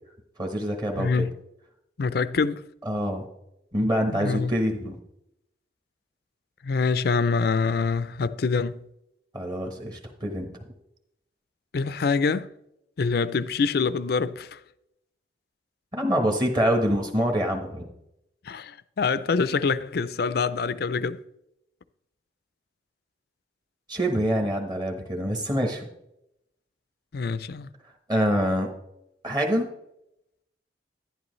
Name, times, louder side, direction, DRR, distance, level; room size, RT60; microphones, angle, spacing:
voice 1, 0.4-1.3 2.8-3.3 3.7-5.0 9.3-10.5 15.9-17.9 23.9-25.9 28.1-28.7 29.2-29.7, equal, 25° right, 1.1 m, -25 dB
voice 2, 1.0-1.3 2.0-2.6 4.1-4.5 6.6-8.8 11.7-12.5 13.0-14.6 18.5-21.2 27.1-27.7, left 4 dB, 60° left, 0.4 m, -25 dB
11.0 x 11.0 x 3.1 m
head